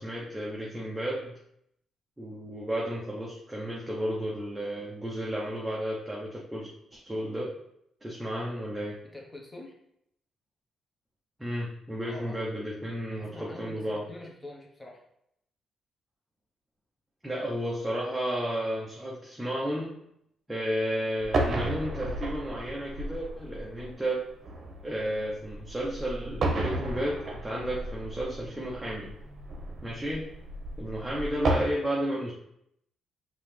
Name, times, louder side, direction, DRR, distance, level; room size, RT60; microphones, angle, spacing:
voice 1, 0.0-1.3 2.2-7.6 8.0-9.0 11.4-14.1 17.2-19.9 20.5-24.3 24.8-29.1 29.8-30.3 30.8-32.3, equal, 10° right, -4 dB, 0.9 m, -32 dB
voice 2, 9.0-9.7 12.0-12.4 13.1-15.0, left 2 dB, 15° left, -1 dB, 1.2 m, -45 dB
sound 1, 21.2-31.6, right 2 dB, 50° right, 1.0 m, -33 dB
5.4 x 2.9 x 3.3 m, 0.75 s
cardioid pair, 90°, 0 cm